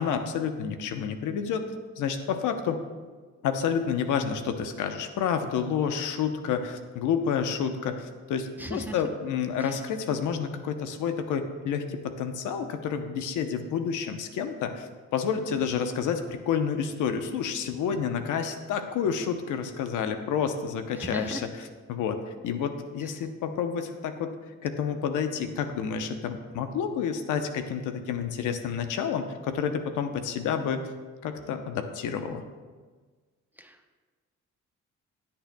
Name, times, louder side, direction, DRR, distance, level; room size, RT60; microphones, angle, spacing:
voice 1, 0.0-1.7 2.0-2.8 3.4-21.5 21.9-24.4 24.6-30.8 31.2-32.4, left 7 dB, 85° left, 7 dB, 0.8 m, -29 dB
voice 2, 8.6-9.0 9.6-9.8 21.0-21.5 23.0-23.2 33.6-34.0, right 1 dB, 5° right, 4 dB, 0.8 m, -38 dB
16.5 x 8.8 x 2.3 m, 1.4 s
cardioid pair, 90°, 30 cm